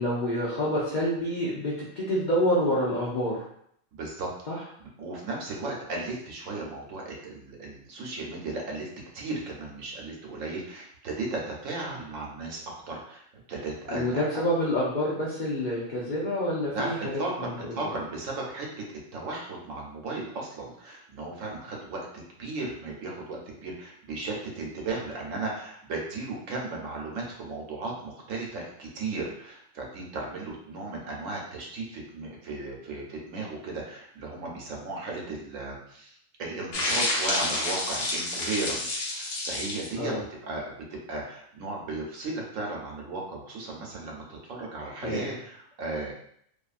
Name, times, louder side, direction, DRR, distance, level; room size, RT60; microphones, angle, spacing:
voice 1, 0.0-3.4 4.5-4.6 13.9-17.0 17.4-17.5 40.0-40.2 45.0-45.3, equal, 55° left, -6 dB, 0.5 m, -27 dB
voice 2, 3.9-13.2 13.5-14.2 16.7-18.7 19.1-40.2 40.4-46.1, right 3 dB, 85° right, -1 dB, 1.1 m, -35 dB
sound 1, 36.7-39.9, left 2 dB, 70° left, 1.0 m, -29 dB
2.6 x 2.4 x 2.4 m, 0.68 s
omnidirectional pair, 1.3 m